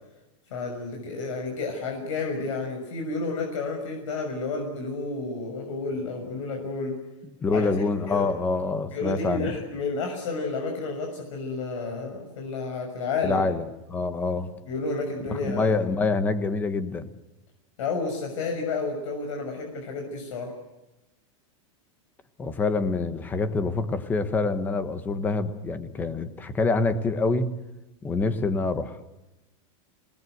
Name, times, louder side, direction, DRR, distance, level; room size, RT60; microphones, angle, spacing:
voice 1, 0.5-6.9 7.5-7.7 8.1-8.3 8.9-13.4 14.7-15.8 17.8-20.5, left 3 dB, 70° left, 2 dB, 6.4 m, -31 dB
voice 2, 7.2-9.6 13.2-14.5 15.3-17.1 22.4-27.5 28.0-29.0, left 3 dB, 10° left, 11 dB, 1.2 m, -26 dB
28.5 x 19.5 x 8.0 m, 1.0 s
supercardioid pair, 180°, 17 cm